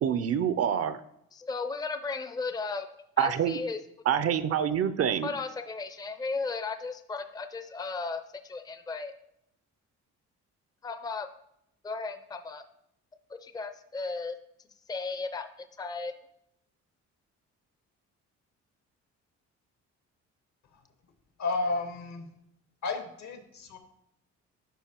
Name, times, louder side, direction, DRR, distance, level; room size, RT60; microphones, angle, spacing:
voice 1, 0.0-1.0 3.2-3.6 4.1-5.3, right 9 dB, 50° right, 13 dB, 0.5 m, -26 dB
voice 2, 1.3-2.9 3.2-3.8 5.2-9.1 10.8-11.3 11.8-12.6 13.3-14.4 14.9-15.5 15.8-16.1, left 4 dB, 15° left, 9 dB, 0.5 m, -35 dB
voice 3, 21.4-22.3 22.8-23.8, left 3 dB, 70° left, 6 dB, 1.2 m, -32 dB
11.0 x 4.4 x 2.9 m, 0.77 s
cardioid pair, 90°, 30 cm